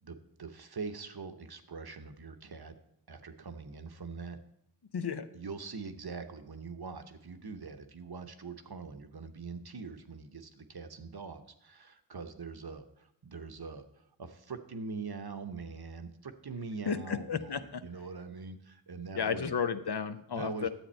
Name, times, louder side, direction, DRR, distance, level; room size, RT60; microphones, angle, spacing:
voice 1, 0.0-2.8 3.1-4.4 5.3-19.5 20.3-20.7, right 4 dB, 55° right, 8 dB, 0.9 m, -43 dB
voice 2, 4.9-5.3 16.9-17.8 19.2-20.7, left 6 dB, 60° left, 11 dB, 0.6 m, -33 dB
10.0 x 7.9 x 4.3 m, 0.78 s
wide cardioid pair, 60°, 45 cm